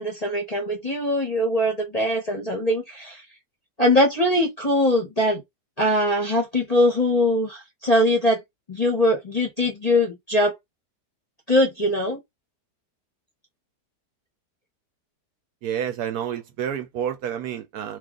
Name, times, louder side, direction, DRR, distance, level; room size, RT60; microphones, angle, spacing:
voice 1, 0.0-3.2 3.8-5.4 5.8-8.4 8.7-10.5 11.5-12.2, left 1 dB, 30° left, 0.7 m, -22 dB
voice 2, 15.6-18.0, right 9 dB, 70° right, 1.0 m, -29 dB
2.9 x 2.5 x 3.6 m
omnidirectional pair, 1.8 m